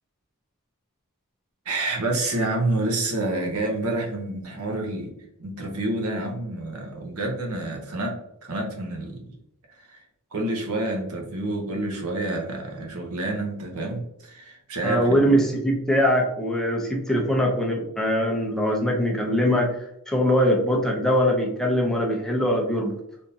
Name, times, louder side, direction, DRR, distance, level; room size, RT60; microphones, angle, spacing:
voice 1, 1.6-5.1 5.4-9.3 9.8-10.0 10.3-15.1, right 2 dB, 75° right, 1 dB, 0.8 m, -28 dB
voice 2, 14.8-19.8 20.1-23.0, equal, ahead, -1 dB, 0.5 m, -22 dB
3.5 x 2.6 x 2.7 m, 0.79 s
head